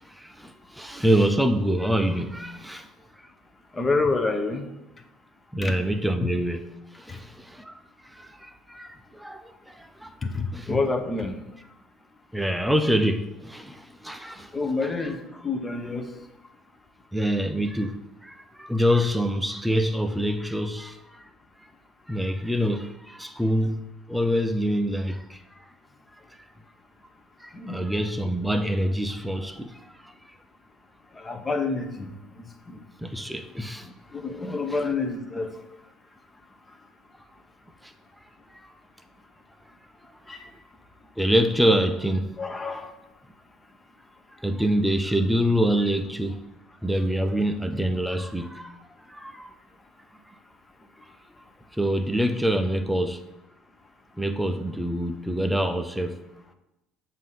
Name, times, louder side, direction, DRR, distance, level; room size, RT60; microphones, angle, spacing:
voice 1, 0.1-2.9 5.5-6.7 7.0-7.7 8.1-10.1 10.5-10.7 12.3-14.5 17.1-21.2 22.1-23.8 24.1-25.4 27.4-30.1 33.0-33.9 34.7-34.8 41.2-42.3 44.4-46.4 46.8-48.7 49.1-49.5 51.7-53.2 54.2-56.2, equal, 5° right, 0.6 m, -26 dB
voice 2, 3.8-4.7 5.6-5.8 6.2-6.3 10.2-11.3 14.5-15.2 15.4-16.1 27.5-27.8 31.2-32.1 32.7-32.8 34.1-35.5 40.3-40.5 42.4-42.9, left 3 dB, 25° left, 0.9 m, -27 dB
7.2 x 2.8 x 5.7 m
hypercardioid pair, 70°, 0 cm